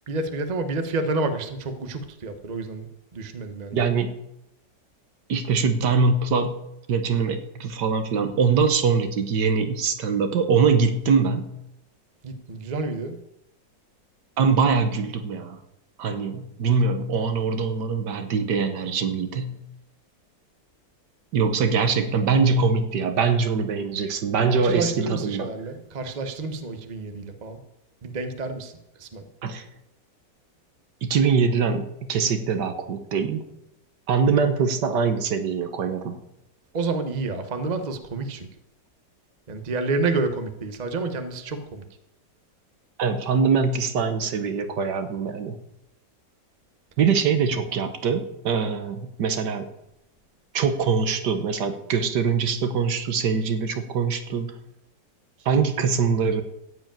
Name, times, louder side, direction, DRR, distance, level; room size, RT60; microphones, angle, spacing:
voice 1, 0.1-2.9 3.1-3.8 12.2-13.2 24.5-27.6 28.0-28.7 29.0-29.2 36.7-38.5 39.5-41.8, right 3 dB, 30° right, 7 dB, 1.0 m, -29 dB
voice 2, 3.7-4.2 5.3-6.5 6.9-11.5 14.4-15.6 16.0-19.6 21.3-25.5 29.4-29.7 31.0-33.4 34.1-36.2 43.0-45.6 47.0-49.7 50.5-54.5 55.4-56.4, right 5 dB, 70° right, 8 dB, 1.6 m, -23 dB
14.5 x 5.0 x 9.0 m, 0.85 s
omnidirectional pair, 1.9 m